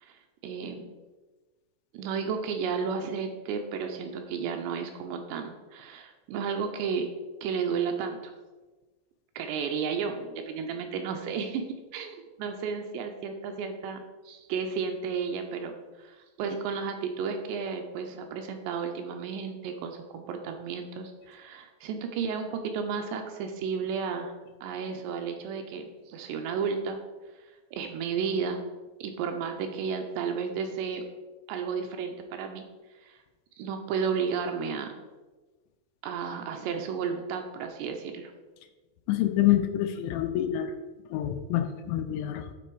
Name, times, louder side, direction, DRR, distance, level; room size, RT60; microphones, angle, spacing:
voice 1, 0.0-0.9 1.9-7.1 7.4-8.3 9.4-11.6 11.9-24.4 24.6-27.0 27.3-27.5 27.7-28.6 29.0-31.0 31.5-32.7 33.0-33.2 33.6-34.9 36.0-38.3, right 6 dB, 80° right, 4 dB, 2.6 m, -33 dB
voice 2, 39.1-40.7 41.1-42.5, left 12 dB, 90° left, 6 dB, 2.9 m, -26 dB
9.1 x 4.0 x 4.6 m, 1.3 s
omnidirectional pair, 5.1 m